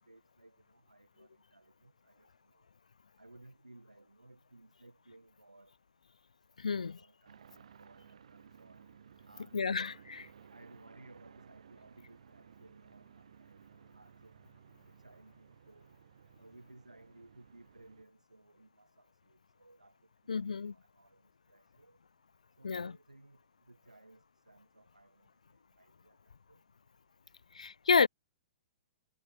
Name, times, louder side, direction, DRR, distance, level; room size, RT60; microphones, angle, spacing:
voice 1, 0.0-2.7 3.2-5.7 6.6-8.9 9.2-9.9 10.5-14.4 14.8-16.0 16.4-20.0 20.3-22.0 22.6-26.2 26.5-26.6, right 2 dB, 85° right, 6.7 m, -60 dB
voice 2, 6.6-7.0 9.5-10.3 20.3-20.7 22.6-22.9 27.5-28.1, left 5 dB, 75° left, 0.3 m, -30 dB
sound 1, 7.3-18.0, right 8 dB, 65° right, 3.5 m, -58 dB
figure-of-eight pair, 115°, 4 cm